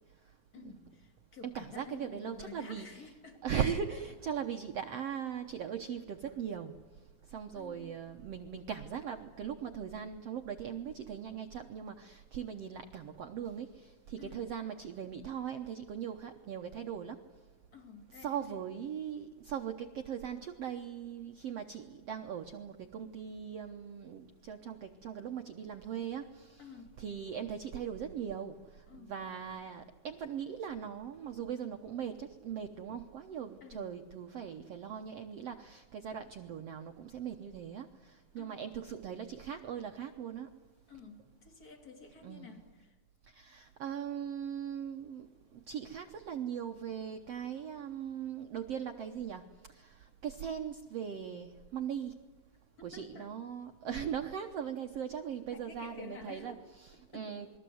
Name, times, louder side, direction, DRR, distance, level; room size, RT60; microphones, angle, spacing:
voice 1, 0.5-3.5 7.5-8.0 14.2-14.5 17.7-18.6 26.6-26.9 28.9-29.1 33.6-33.9 38.4-38.6 40.9-42.9 52.8-53.3 55.5-56.6 57.1-57.4, left 4 dB, 25° left, 3 dB, 3.2 m, -51 dB
voice 2, 1.4-3.1 3.4-6.7 7.3-17.2 18.1-26.7 27.0-40.5 42.2-42.5 43.3-45.3 45.7-49.4 49.7-52.2 52.8-57.6, right 8 dB, 80° right, 5 dB, 1.4 m, -40 dB
28.5 x 22.5 x 7.9 m, 1.3 s
omnidirectional pair, 4.4 m